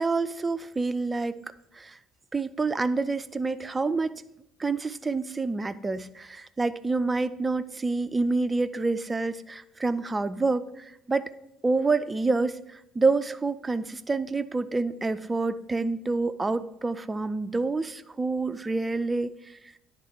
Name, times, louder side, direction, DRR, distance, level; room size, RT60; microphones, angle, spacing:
voice 1, 0.0-1.4 1.7-2.0 2.3-4.1 4.6-11.3 11.6-19.7, right 3 dB, 20° right, 14 dB, 0.4 m, -28 dB
10.0 x 3.6 x 4.5 m, 0.82 s
figure-of-eight pair, 55°, 0 cm